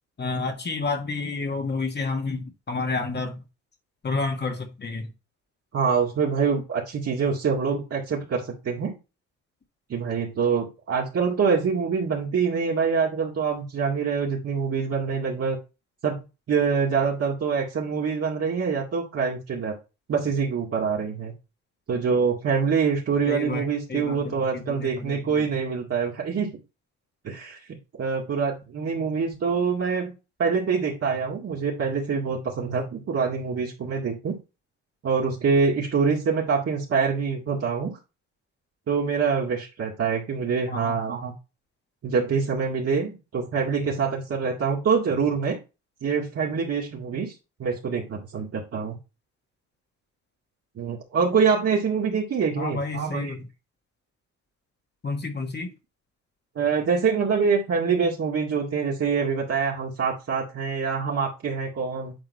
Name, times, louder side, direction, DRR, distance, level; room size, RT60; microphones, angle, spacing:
voice 1, 0.2-3.4 4.0-5.1 23.3-23.6 23.9-25.6 40.7-41.0 52.6-53.5 55.0-55.7, left 3 dB, 35° left, 1.7 m, -30 dB
voice 2, 5.7-8.9 9.9-15.6 16.0-19.8 20.1-21.3 21.9-26.5 27.2-27.6 28.0-30.1 30.4-34.4 35.0-38.0 38.9-41.3 42.0-45.6 46.0-47.3 47.6-48.9 50.8-53.3 56.6-62.1, right 5 dB, 50° right, 2.0 m, -25 dB
8.9 x 3.9 x 4.1 m
cardioid pair, 90°, 30 cm